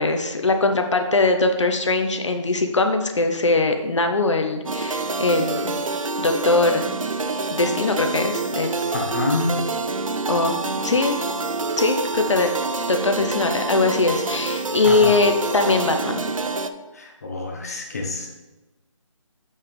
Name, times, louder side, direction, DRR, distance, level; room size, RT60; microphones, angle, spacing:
voice 1, 0.0-5.8 6.2-6.9 7.5-8.7 10.3-10.6 10.8-11.2 11.8-12.5 12.9-16.2, left 3 dB, 65° left, 5 dB, 0.8 m, -21 dB
sound 1, 4.7-16.7, right 3 dB, 80° right, 0.6 m, -27 dB
voice 2, 8.9-9.5 14.8-15.1 16.9-18.3, left 3 dB, 30° left, 0 dB, 0.8 m, -27 dB
8.0 x 5.5 x 3.4 m, 1.1 s
figure-of-eight pair, 160°, 17 cm